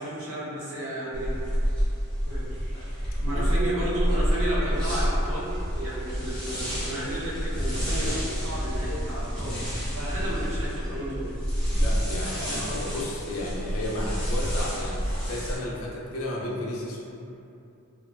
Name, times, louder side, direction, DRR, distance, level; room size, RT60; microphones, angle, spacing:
voice 1, 0.0-1.4 2.2-2.8 3.2-11.3 12.2-12.8, right 1 dB, 70° right, -8 dB, 0.7 m, -33 dB
sound 1, 1.1-15.6, equal, 5° left, 0.5 m, -28 dB
voice 2, 3.3-4.0 11.7-17.0, left 1 dB, 70° left, -3 dB, 0.4 m, -33 dB
2.6 x 2.1 x 2.3 m, 2.7 s
head